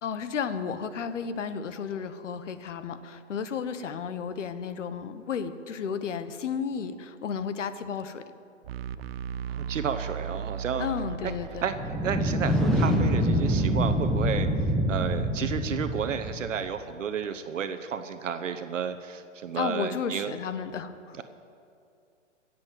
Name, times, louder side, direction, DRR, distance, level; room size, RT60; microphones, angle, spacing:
voice 1, 0.0-8.2 10.8-11.6 19.5-21.2, left 6 dB, 70° left, 11 dB, 1.2 m, -33 dB
sound 1, 8.6-13.7, right 8 dB, 55° right, 0.7 m, -37 dB
voice 2, 9.5-10.9 11.2-11.3 11.6-11.7 12.0-14.5 14.9-20.3 21.2-21.3, right 7 dB, 75° right, 9 dB, 1.0 m, -32 dB
sound 2, 11.7-16.6, equal, ahead, 0.8 m, -26 dB
16.5 x 7.6 x 7.4 m, 2.5 s
hypercardioid pair, 140°, 38 cm